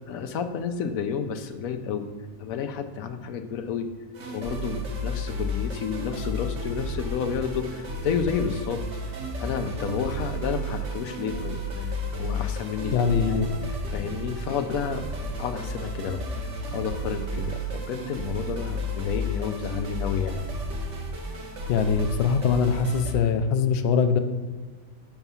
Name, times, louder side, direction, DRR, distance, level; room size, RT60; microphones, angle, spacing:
voice 1, 0.1-2.1 2.4-3.9 4.3-8.8 9.4-11.6 12.1-13.0 13.3-13.4 13.9-15.0 15.4-20.4, left 7 dB, 85° left, 7 dB, 1.0 m, -31 dB
sound 1, 4.1-23.1, left 1 dB, 65° right, 1.2 m, -32 dB
voice 2, 12.9-13.5 21.7-24.2, left 6 dB, 65° left, 8 dB, 0.7 m, -22 dB
5.8 x 4.5 x 5.5 m, 1.5 s
omnidirectional pair, 1.4 m